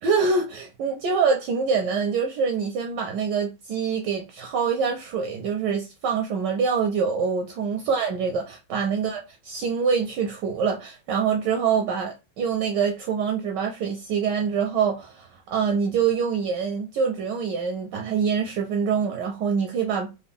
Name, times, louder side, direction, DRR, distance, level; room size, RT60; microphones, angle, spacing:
voice 1, 0.0-9.2 9.5-20.1, right 6 dB, 75° right, 1.0 m, -25 dB
3.9 x 2.2 x 3.4 m
omnidirectional pair, 2.2 m